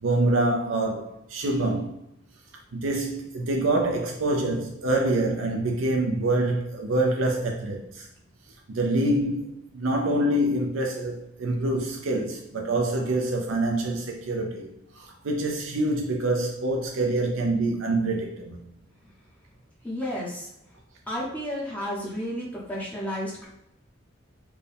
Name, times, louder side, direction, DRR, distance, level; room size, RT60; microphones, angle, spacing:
voice 1, 0.0-2.0 2.7-8.1 8.7-18.6, right 2 dB, 85° right, 0.5 m, -26 dB
voice 2, 19.8-20.5 21.1-23.5, equal, 10° left, 0.8 m, -32 dB
4.4 x 2.2 x 3.3 m
head